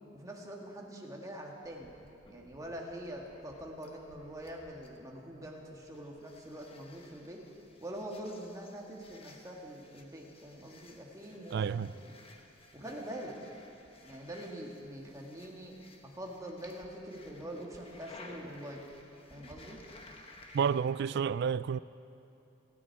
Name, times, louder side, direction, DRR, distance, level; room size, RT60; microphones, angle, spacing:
voice 1, 0.1-1.9 2.3-7.4 7.8-11.9 12.7-13.4 14.0-15.8 16.0-18.8 19.3-19.8, right 1 dB, 15° right, 1.9 m, -44 dB
sound 1, 1.6-20.8, left 2 dB, 30° left, 1.3 m, -57 dB
voice 2, 11.5-11.9 20.5-21.8, right 7 dB, 60° right, 0.3 m, -30 dB
28.0 x 10.0 x 4.7 m
head